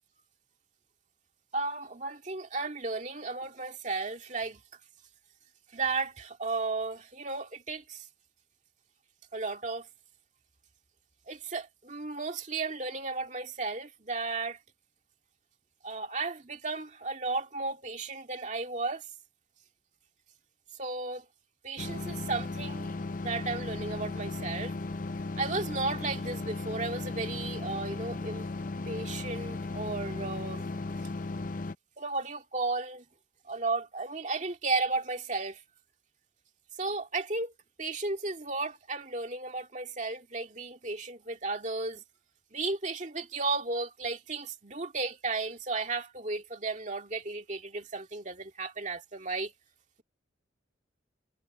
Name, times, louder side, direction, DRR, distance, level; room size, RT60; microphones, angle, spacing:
voice 1, 1.5-4.6 5.7-8.1 9.3-9.9 11.3-14.6 15.8-19.1 20.8-21.3 21.6-22.9 23.2-24.7 25.4-28.5 28.9-30.6 32.0-33.1 33.5-35.6 36.8-37.5 37.8-42.0 42.5-49.5, right 3 dB, 40° right, 2.3 m, -34 dB
sound 1, 21.8-31.8, left 3 dB, 45° left, 0.6 m, -36 dB
head